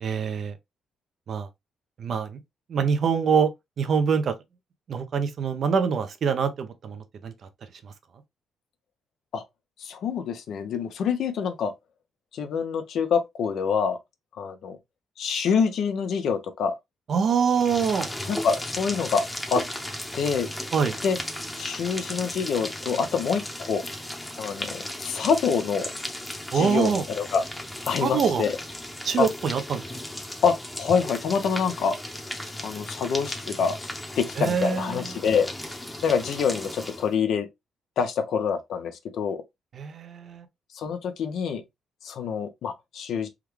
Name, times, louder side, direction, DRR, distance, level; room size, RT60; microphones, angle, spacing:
voice 1, 0.0-0.5 1.3-1.5 2.0-2.4 2.7-3.5 3.8-4.3 4.9-7.3 7.8-7.9 17.1-18.1 20.7-21.0 26.5-27.0 28.0-28.4 29.0-29.9 34.4-35.1 39.7-40.5, right 6 dB, 55° right, 0.6 m, -24 dB
voice 2, 9.8-11.7 12.3-14.0 14.4-14.8 15.2-16.7 18.3-19.6 20.1-20.5 21.0-21.2 21.6-23.4 23.7-23.8 24.4-25.9 26.5-27.4 27.9-28.6 29.2-29.3 30.4-32.0 32.6-33.8 34.2-35.5 36.0-37.5 38.0-39.4 40.7-41.6 42.0-43.3, left 6 dB, 70° left, 0.7 m, -26 dB
sound 1, 17.5-37.1, left 1 dB, 10° left, 0.9 m, -36 dB
3.6 x 2.3 x 3.1 m
cardioid pair, 90°, 0 cm